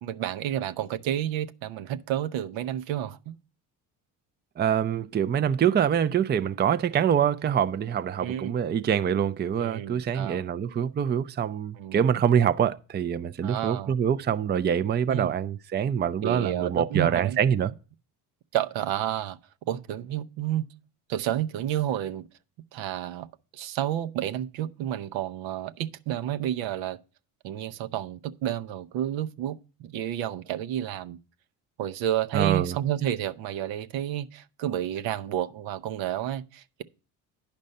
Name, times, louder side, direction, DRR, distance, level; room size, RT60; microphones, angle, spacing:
voice 1, 0.0-3.4 8.2-8.5 9.6-10.4 11.8-12.0 13.4-13.9 15.1-15.3 16.2-17.4 18.5-19.4 19.7-20.7 21.1-22.3 22.7-23.3 23.5-27.0 27.4-31.2 31.8-36.8, right 11 dB, 75° right, 0.9 m, -30 dB
voice 2, 4.6-17.7 32.3-32.8, right 8 dB, 25° right, 0.5 m, -25 dB
10.5 x 5.3 x 5.3 m
supercardioid pair, 75°, 46 cm